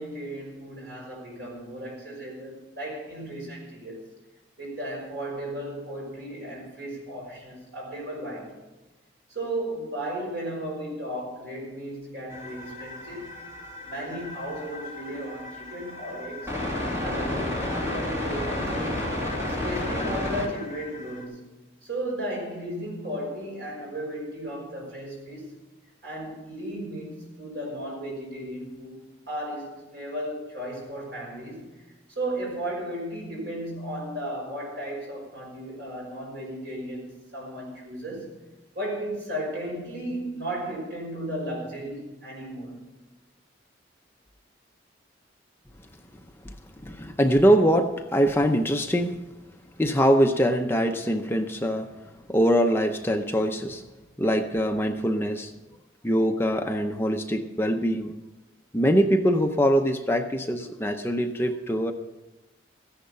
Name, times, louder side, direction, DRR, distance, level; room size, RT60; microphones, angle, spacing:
voice 1, 0.0-4.1 4.6-8.6 9.3-13.4 13.8-16.5 17.0-19.1 19.4-21.4 21.8-25.6 26.0-38.3 38.7-42.8, right 1 dB, 65° right, -2 dB, 5.7 m, -35 dB
sound 1, 12.3-21.2, left 1 dB, 15° right, 2.8 m, -32 dB
voice 2, 46.8-49.2 49.8-51.9 52.3-53.8 54.2-55.5 56.0-58.1 58.7-61.9, equal, 10° left, 5 dB, 0.6 m, -23 dB
15.0 x 10.5 x 5.7 m, 1.1 s
head